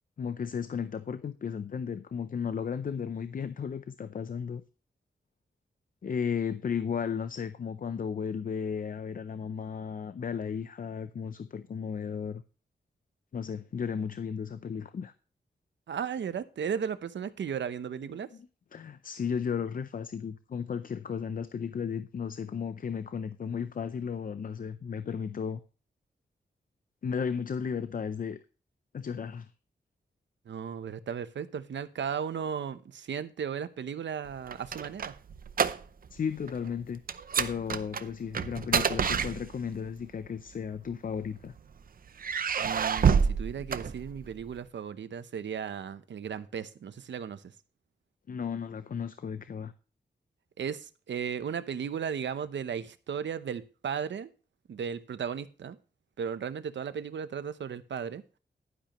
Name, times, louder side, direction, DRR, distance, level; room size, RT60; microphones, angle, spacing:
voice 1, 0.2-4.6 6.0-12.4 13.3-15.1 18.1-25.6 27.0-28.4 28.9-29.5 36.1-37.0 37.4-41.5 48.3-49.7, left 6 dB, 50° left, 0.5 m, -34 dB
voice 2, 15.9-18.3 30.5-35.2 42.6-47.4 50.6-54.3 54.7-55.8 56.2-58.2, right 7 dB, 85° right, 0.8 m, -35 dB
sound 1, 34.3-36.2 36.4-36.7 37.1-39.9 40.7-41.6 42.2-44.5, right 6 dB, 50° right, 0.6 m, -28 dB
11.5 x 10.0 x 3.0 m
wide cardioid pair, 155°, 18 cm